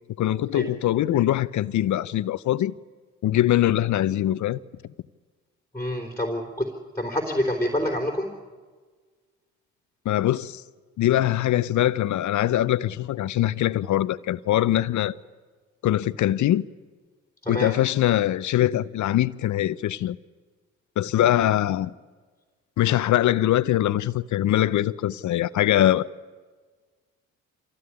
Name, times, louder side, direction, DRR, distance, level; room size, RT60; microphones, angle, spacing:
voice 1, 0.2-2.7 3.2-4.6 10.1-10.6 11.0-15.1 15.8-16.6 17.5-20.2 21.0-21.9 22.8-26.1, left 13 dB, 55° left, 0.7 m, -22 dB
voice 2, 5.7-6.7 7.0-8.3 17.4-17.7, left 1 dB, 5° left, 3.7 m, -27 dB
25.0 x 15.5 x 9.7 m
hypercardioid pair, 50°, 36 cm